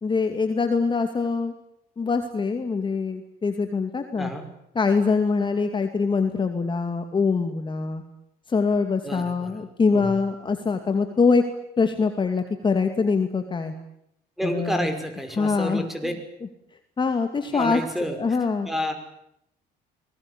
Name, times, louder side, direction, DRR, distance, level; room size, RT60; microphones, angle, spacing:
voice 1, 0.0-1.5 2.0-4.3 4.8-8.0 8.5-11.4 11.8-13.7 14.4-14.9 15.4-15.8 17.0-17.8 18.2-18.7, left 4 dB, 30° left, 6 dB, 2.4 m, -23 dB
voice 2, 4.2-4.5 9.0-9.5 9.9-10.1 14.4-16.1 17.5-18.2 18.7-18.9, equal, ahead, 7 dB, 5.7 m, -29 dB
24.0 x 20.0 x 9.9 m, 0.76 s
cardioid pair, 110°, 17 cm